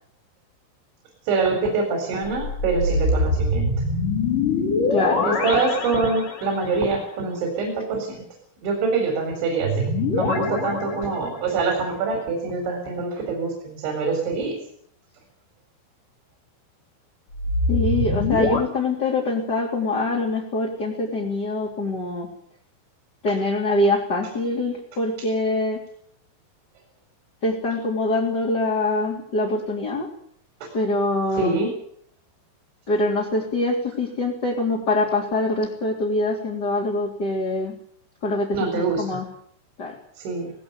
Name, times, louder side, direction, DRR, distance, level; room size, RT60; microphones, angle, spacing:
voice 1, 1.2-3.7 5.2-8.2 8.6-14.5 30.6-30.7 31.3-31.7 38.5-39.2 40.2-40.5, right 4 dB, 70° right, 3 dB, 6.8 m, -25 dB
sound 1, 2.2-6.8 9.6-11.7 17.3-18.6, left 2 dB, 45° left, 4.5 m, -24 dB
voice 2, 4.9-5.3 17.7-22.3 23.2-25.8 27.4-30.1 30.7-31.6 32.9-37.7 38.2-39.2 39.8-39.9, left 2 dB, 25° left, -1 dB, 3.1 m, -24 dB
19.5 x 18.5 x 8.3 m, 0.65 s
omnidirectional pair, 5.6 m